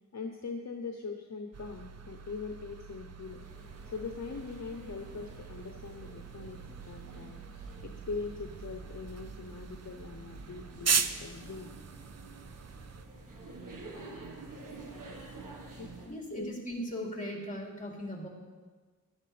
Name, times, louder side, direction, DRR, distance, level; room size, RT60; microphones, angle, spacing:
voice 1, 0.1-3.4 3.8-6.6 6.9-11.8 15.8-16.5, left 4 dB, 55° left, 3 dB, 0.8 m, -42 dB
sound 1, 1.5-13.1, right 6 dB, 50° right, 0.6 m, -39 dB
sound 2, 3.3-16.2, right 2 dB, 75° right, 1.4 m, -49 dB
voice 2, 16.0-18.3, equal, 25° left, -3 dB, 3.3 m, -38 dB
15.0 x 11.5 x 3.3 m, 1.4 s
wide cardioid pair, 70°, 32 cm